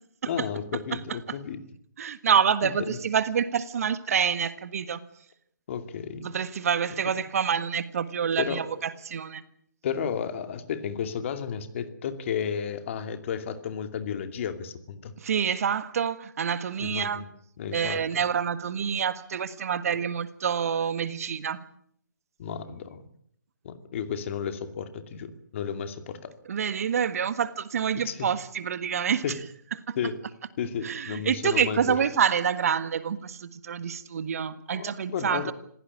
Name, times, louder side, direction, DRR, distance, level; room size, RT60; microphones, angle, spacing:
voice 1, 0.3-1.6 2.6-3.0 5.7-6.3 8.4-8.8 9.8-15.1 16.8-17.2 17.6-18.0 22.4-23.0 23.6-26.3 27.9-28.3 29.2-29.4 30.0-30.2 30.6-32.0 34.7-35.5, left 7 dB, 40° left, 9 dB, 2.6 m, -33 dB
voice 2, 2.0-5.0 6.2-9.4 15.2-17.2 17.7-21.6 26.5-29.2 29.9-30.0 30.8-35.5, right 7 dB, 50° right, 14 dB, 1.6 m, -27 dB
26.5 x 16.5 x 8.6 m, 0.67 s
figure-of-eight pair, 140°, 10 cm